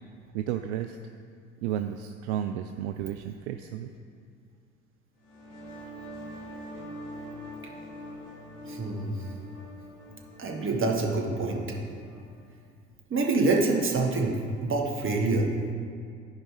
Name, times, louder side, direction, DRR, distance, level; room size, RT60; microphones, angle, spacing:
voice 1, 0.3-1.0 1.6-3.9, right 10 dB, 65° right, 7 dB, 0.5 m, -32 dB
sound 1, 5.2-12.6, equal, 70° left, 1.9 m, -44 dB
voice 2, 8.6-9.1 10.4-11.6 13.1-14.4 14.6-15.5, right 3 dB, 35° right, 0 dB, 1.5 m, -26 dB
15.0 x 5.0 x 3.3 m, 2.2 s
figure-of-eight pair, 55°, 36 cm